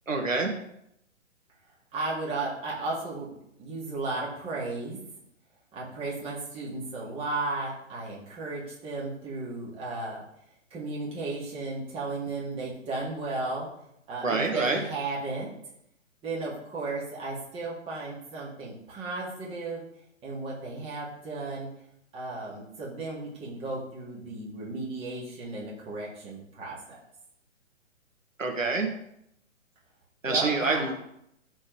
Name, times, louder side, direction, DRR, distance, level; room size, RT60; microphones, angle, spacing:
voice 1, 0.1-0.5 14.2-14.8 28.4-28.9 30.2-30.9, right 3 dB, 80° right, 2 dB, 1.7 m, -26 dB
voice 2, 1.9-5.0 5.7-10.2 10.7-13.7 14.1-15.5 16.2-19.8 20.2-21.7 22.1-27.0 30.3-30.9, right 3 dB, 15° right, -5 dB, 1.9 m, -34 dB
13.5 x 4.5 x 3.2 m, 0.77 s
figure-of-eight pair, 130°, 39 cm